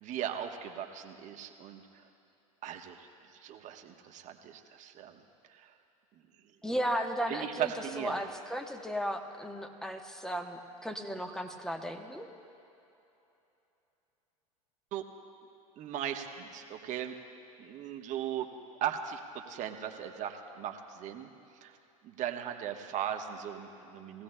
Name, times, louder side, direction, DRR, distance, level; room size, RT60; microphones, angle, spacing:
voice 1, 0.0-1.8 2.6-3.1 3.4-5.2 5.5-5.7 7.3-8.2 14.9-15.1 15.8-17.1 17.6-18.5 18.8-21.3 21.6-21.8 22.0-24.2, right 10 dB, 45° right, 5 dB, 1.1 m, -38 dB
voice 2, 6.6-7.7 8.0-12.3, equal, 5° left, 5 dB, 1.0 m, -35 dB
20.5 x 16.0 x 2.2 m, 2.9 s
hypercardioid pair, 90°, 18 cm